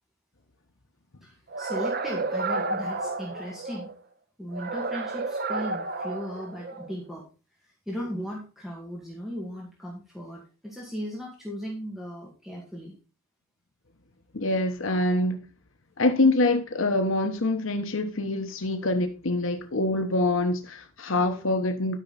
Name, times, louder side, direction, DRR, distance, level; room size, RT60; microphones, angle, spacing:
voice 1, 1.2-3.9 4.4-7.3 7.6-12.9 21.1-21.5, equal, ahead, 2.0 m, -37 dB
sound 1, 1.5-3.9 4.5-6.9, right 3 dB, 45° right, 0.7 m, -31 dB
voice 2, 14.3-15.4 16.0-22.0, left 2 dB, 70° left, 1.1 m, -25 dB
12.5 x 5.9 x 4.1 m
head